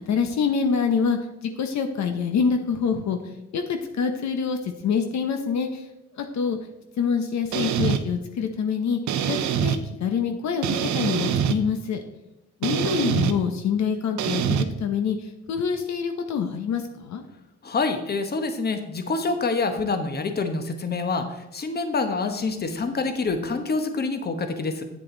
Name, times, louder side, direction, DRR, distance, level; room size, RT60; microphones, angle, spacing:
voice 1, 0.1-3.2 3.5-5.9 6.2-6.6 7.0-9.0 9.3-12.0 12.6-17.2, left 6 dB, 65° left, 6 dB, 0.9 m, -26 dB
sound 1, 7.5-8.0 9.1-9.8 10.6-11.6 12.6-13.3 14.2-14.6, right 8 dB, 70° right, 0.7 m, -24 dB
voice 2, 17.6-24.8, left 3 dB, 30° left, 7 dB, 1.1 m, -26 dB
8.3 x 7.5 x 3.9 m, 0.90 s
cardioid pair, 90°, 30 cm